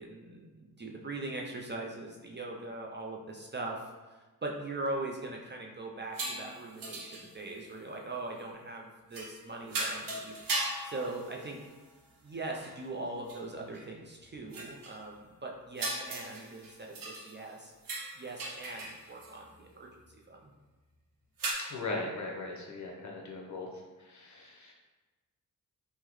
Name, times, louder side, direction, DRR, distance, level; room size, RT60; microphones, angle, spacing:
voice 1, 0.0-10.4 10.8-11.6 12.2-19.9 20.3-20.5, right 2 dB, 30° right, 0 dB, 0.4 m, -41 dB
sound 1, 6.1-7.7 9.1-9.4 9.7-11.9 12.3-12.4 12.6-12.8 13.3-13.4 13.7-13.8 14.5-15.0 15.8-17.5 17.8-19.3 21.4-21.5, right 2 dB, 65° right, 0.7 m, -38 dB
voice 2, 21.7-23.7 24.0-24.7, left 2 dB, 50° left, -1 dB, 0.7 m, -39 dB
3.6 x 2.1 x 3.0 m, 1.2 s
cardioid pair, 75°, 37 cm